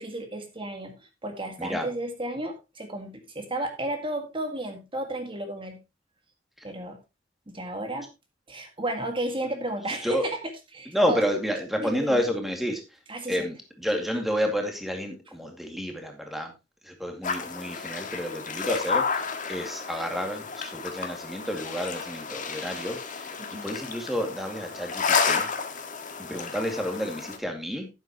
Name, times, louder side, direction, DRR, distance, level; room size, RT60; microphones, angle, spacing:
voice 1, 0.0-5.8 6.6-7.0 7.5-8.1 8.5-10.4 10.7-11.2 11.8-12.2 13.1-13.3 23.4-23.7, right 1 dB, 30° right, 5 dB, 1.9 m, -33 dB
voice 2, 10.9-13.0 13.3-16.5 16.8-23.3 23.6-25.5 26.2-27.9, equal, ahead, 3 dB, 2.3 m, -30 dB
sound 1, 17.2-27.4, left 5 dB, 45° left, 1.7 m, -31 dB
11.5 x 9.2 x 3.0 m, 0.26 s
head